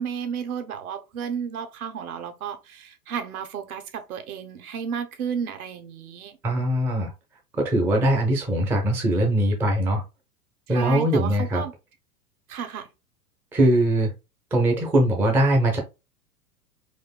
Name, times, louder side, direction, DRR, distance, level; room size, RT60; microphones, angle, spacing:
voice 1, 0.0-6.4 10.7-11.7 12.5-12.9, right 7 dB, 65° right, 1.0 m, -32 dB
voice 2, 6.4-7.1 7.5-10.0 10.7-11.6 13.5-14.1 14.5-15.8, right 1 dB, 5° right, 0.4 m, -21 dB
4.3 x 2.4 x 2.2 m
figure-of-eight pair, 100°, 47 cm